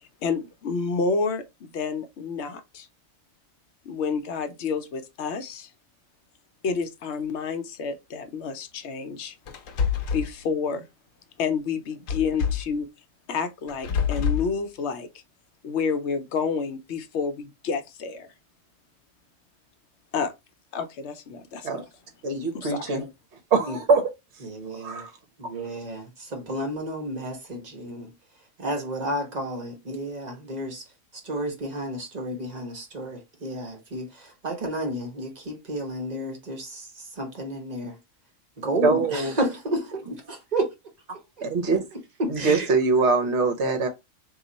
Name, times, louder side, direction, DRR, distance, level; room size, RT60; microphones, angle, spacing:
voice 1, 0.0-2.9 3.8-5.7 6.6-9.4 10.1-10.9 11.4-12.9 13.3-15.1 15.6-18.3 20.1-20.3 20.7-21.8 22.5-22.9, left 5 dB, 65° left, 0.9 m, -29 dB
sound 1, 9.5-10.3 12.1-12.8 13.7-14.5, left 7 dB, 85° left, 1.0 m, -26 dB
voice 2, 22.2-23.1 23.5-24.0 24.8-25.1 38.8-39.3 41.4-41.9 42.3-43.9, right 4 dB, 60° right, 1.2 m, -23 dB
voice 3, 24.4-25.1 25.4-28.1 28.6-30.8 31.1-38.0 38.6-41.5 42.2-42.7, right 1 dB, 35° right, 1.1 m, -32 dB
3.1 x 2.4 x 3.9 m
omnidirectional pair, 1.3 m